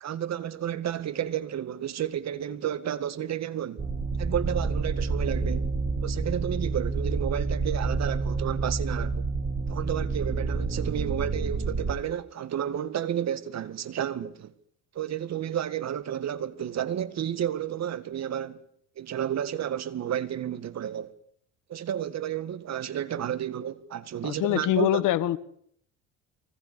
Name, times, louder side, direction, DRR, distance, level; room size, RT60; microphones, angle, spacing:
voice 1, 0.0-3.8 4.2-5.7 6.0-9.2 9.7-14.5 15.0-18.6 19.0-21.1 21.7-24.9, right 10 dB, 50° right, 2.0 m, -31 dB
sound 1, 3.8-11.9, right 4 dB, 25° right, 2.9 m, -29 dB
voice 2, 24.2-25.4, left 13 dB, 65° left, 1.3 m, -24 dB
24.0 x 20.5 x 6.9 m
supercardioid pair, 80°, 33 cm